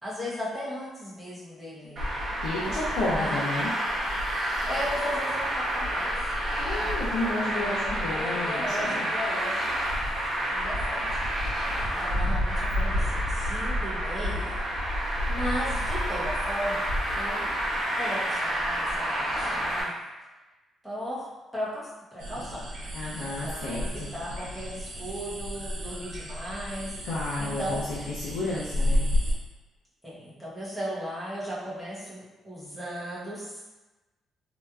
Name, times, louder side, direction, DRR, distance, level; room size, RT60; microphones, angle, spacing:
voice 1, 0.0-2.1 2.6-3.5 4.6-6.1 6.8-7.2 7.6-9.8 10.5-11.2 11.8-14.6 15.3-17.5 17.9-20.0 20.8-21.3 21.5-22.6 23.1-27.0 27.4-27.8 30.0-33.6, equal, ahead, -9 dB, 1.1 m, -36 dB
Traffic noise roadway noise, 2.0-19.8, equal, 30° right, 1.2 m, -29 dB
voice 2, 2.4-3.7 6.6-9.1 22.9-24.1 27.0-29.0, left 2 dB, 80° left, -7 dB, 0.6 m, -32 dB
sound 1, 22.2-29.3, left 1 dB, 70° right, 0.8 m, -32 dB
3.1 x 2.9 x 2.4 m, 1.1 s
cardioid pair, 140°, 0 cm